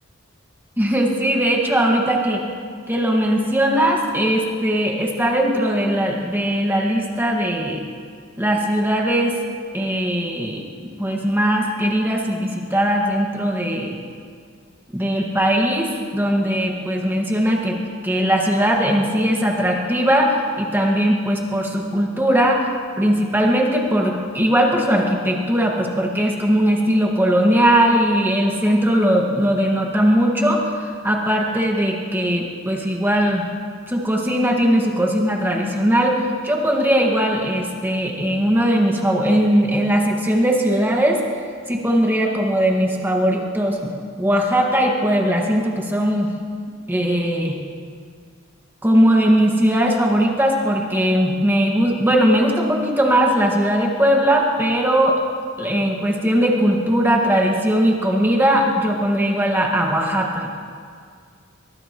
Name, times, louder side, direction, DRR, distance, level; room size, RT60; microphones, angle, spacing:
voice 1, 0.8-2.4 2.9-7.8 8.4-9.4 9.7-10.6 11.0-14.0 14.9-17.8 18.0-22.7 23.0-33.4 33.9-41.2 41.7-43.9 44.2-46.3 46.9-47.6 48.8-55.2 55.6-60.5, equal, 10° right, -1 dB, 1.7 m, -19 dB
23.5 x 20.0 x 3.0 m, 2.1 s
head